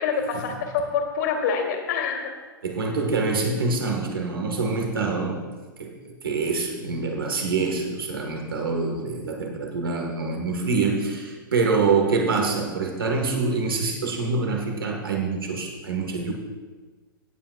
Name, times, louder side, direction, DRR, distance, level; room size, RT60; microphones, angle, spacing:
voice 1, 0.0-2.3, left 6 dB, 55° left, 3 dB, 2.2 m, -26 dB
voice 2, 2.6-5.5 5.8-16.3, right 4 dB, 90° right, 1 dB, 1.8 m, -25 dB
17.5 x 8.4 x 2.5 m, 1.4 s
hypercardioid pair, 125°, 12 cm